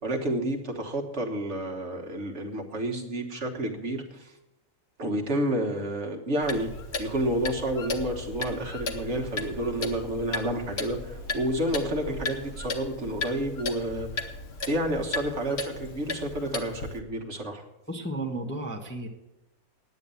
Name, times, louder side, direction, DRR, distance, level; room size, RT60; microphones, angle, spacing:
voice 1, 0.0-4.4 5.0-6.7 7.0-14.3 14.7-17.6, right 1 dB, 50° right, 2 dB, 1.6 m, -30 dB
Clock, 6.4-17.0, left 3 dB, 50° left, 1.2 m, -36 dB
sound 1, 7.4-12.7, right 3 dB, 80° right, 1.6 m, -45 dB
voice 2, 17.9-19.1, right 1 dB, 10° left, 1 dB, 1.0 m, -33 dB
9.9 x 8.9 x 6.9 m, 0.96 s
omnidirectional pair, 1.5 m